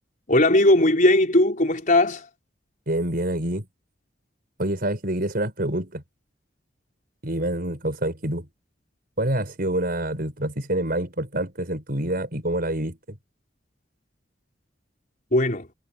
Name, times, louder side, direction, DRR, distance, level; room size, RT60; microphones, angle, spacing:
voice 1, 0.3-2.3 15.3-15.7, left 1 dB, 45° left, 4.8 m, -18 dB
voice 2, 2.9-3.7 4.6-6.0 7.2-8.5 9.2-13.2, right 1 dB, 55° right, 5.8 m, -27 dB
head